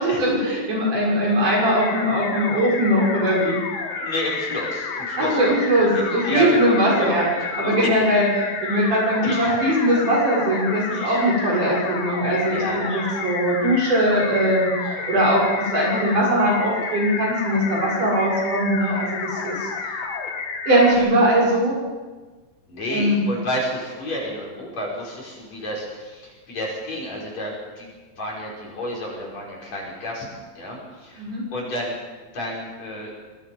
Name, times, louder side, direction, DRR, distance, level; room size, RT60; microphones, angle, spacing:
voice 1, 0.0-3.6 5.2-7.3 7.6-8.3 8.6-19.7 20.7-21.8 22.9-23.2 31.2-31.4, equal, 65° right, -4 dB, 8.1 m, -20 dB
sound 1, 1.4-20.9, left 5 dB, 80° left, 3.8 m, -30 dB
voice 2, 3.9-5.5 5.9-6.6 6.9-8.0 8.7-9.5 10.9-11.2 12.5-13.1 18.9-19.0 21.0-21.1 22.7-27.9 28.2-32.0 32.3-33.1, left 1 dB, 50° left, -3 dB, 6.6 m, -31 dB
25.0 x 19.0 x 5.6 m, 1.3 s
omnidirectional pair, 3.9 m